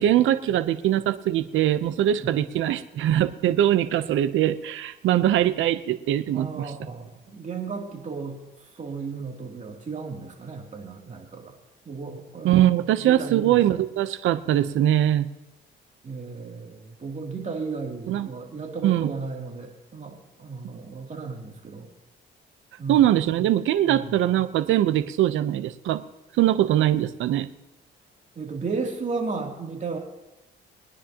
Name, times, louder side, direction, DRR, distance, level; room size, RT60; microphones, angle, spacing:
voice 1, 0.0-6.7 12.4-15.3 18.1-18.3 18.8-19.1 22.9-26.0 26.4-27.5, right 12 dB, 80° right, 13 dB, 0.7 m, -22 dB
voice 2, 6.3-8.4 8.7-11.5 11.8-12.7 13.0-13.6 16.0-21.9 22.8-23.0 23.8-24.1 28.4-30.0, right 4 dB, 40° right, 0 dB, 2.8 m, -34 dB
22.5 x 10.0 x 2.9 m, 1.0 s
cardioid pair, 90°, 20 cm